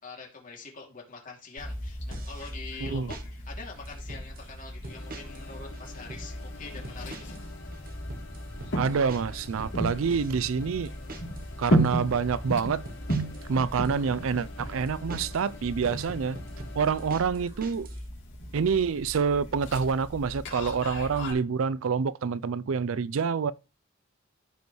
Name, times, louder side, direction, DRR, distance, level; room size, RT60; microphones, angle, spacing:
voice 1, 0.0-7.4, left 4 dB, 40° left, 2.7 m, -44 dB
sound 1, 1.6-21.3, right 1 dB, 65° left, 3.1 m, -35 dB
sound 2, 2.1-2.5 2.9-3.3 3.9-4.5 4.8-5.5 5.7-6.3 6.8-7.5 7.7-11.5 11.8-12.3 12.9-15.5 15.8-18.0, right 2 dB, 45° right, 1.0 m, -43 dB
voice 2, 2.8-3.1 8.8-10.9 11.6-12.8 13.5-16.4 16.8-17.9 18.5-23.5, right 6 dB, 75° right, 0.4 m, -27 dB
sound 3, 4.9-17.1, left 3 dB, 85° left, 3.7 m, -47 dB
14.0 x 5.3 x 3.1 m
head